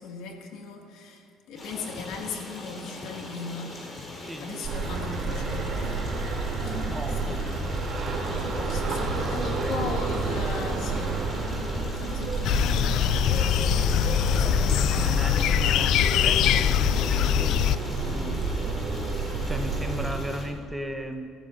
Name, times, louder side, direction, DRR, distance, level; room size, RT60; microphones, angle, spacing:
voice 1, 0.0-3.8 4.4-6.0 6.6-6.9 7.2-7.4 8.2-11.2 11.6-15.1 18.1-18.4, left 4 dB, 85° left, 2 dB, 1.9 m, -38 dB
Stream, 1.6-20.5, left 1 dB, 35° left, 4.1 m, -41 dB
sound 1, 4.6-20.1, right 3 dB, 50° right, 2.8 m, -30 dB
voice 2, 6.9-7.5 9.3-10.0 12.4-12.9 14.3-18.4 19.4-21.3, right 1 dB, 5° right, 5 dB, 0.9 m, -37 dB
sound 2, 12.4-17.8, left 11 dB, 70° left, 0.3 m, -23 dB
22.0 x 14.0 x 2.6 m, 2.3 s
cardioid pair, 125°, 0 cm